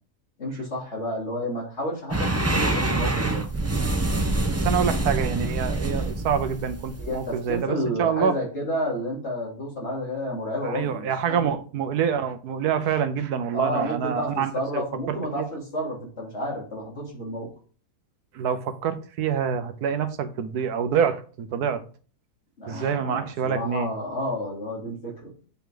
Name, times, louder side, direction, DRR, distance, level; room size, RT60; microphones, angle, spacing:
voice 1, 0.4-3.4 7.0-11.5 13.5-17.5 22.6-25.3, equal, 45° left, 3.3 m, -31 dB
sound 1, 2.1-7.6, right 2 dB, 15° right, 0.5 m, -26 dB
voice 2, 4.5-8.3 10.6-15.5 18.3-21.8 22.7-23.9, right 7 dB, 80° right, 1.3 m, -26 dB
8.3 x 5.8 x 3.8 m
omnidirectional pair, 1.7 m